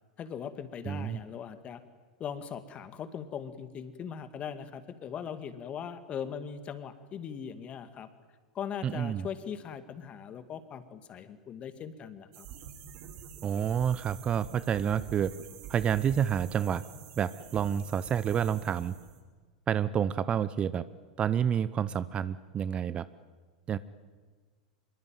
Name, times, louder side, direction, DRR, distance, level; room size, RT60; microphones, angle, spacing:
voice 1, 0.2-1.8 2.2-8.1 8.5-12.5, left 8 dB, 30° left, 10 dB, 2.4 m, -40 dB
voice 2, 0.9-1.2 8.8-9.3 13.4-15.3 15.7-16.8 17.2-18.9 19.7-20.8 21.2-23.1 23.7-23.8, right 8 dB, 30° right, 16 dB, 0.8 m, -29 dB
sound 1, 12.3-19.2, right 8 dB, 50° right, 4.0 m, -47 dB
26.0 x 23.0 x 9.3 m, 1.4 s
figure-of-eight pair, 90°, 4 cm